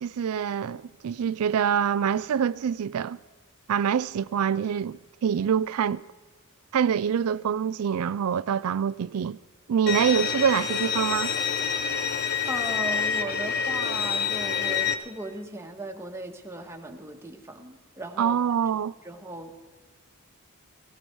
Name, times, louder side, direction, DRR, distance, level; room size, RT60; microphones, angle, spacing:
voice 1, 0.0-3.2 3.7-6.0 6.7-9.4 9.7-11.3 18.2-18.9, right 8 dB, 80° right, 0.4 m, -25 dB
Bowed string instrument, 9.9-14.9, left 7 dB, 45° left, 1.0 m, -27 dB
voice 2, 12.5-18.4 19.0-19.5, right 2 dB, 10° right, 1.5 m, -37 dB
17.5 x 17.5 x 4.6 m
head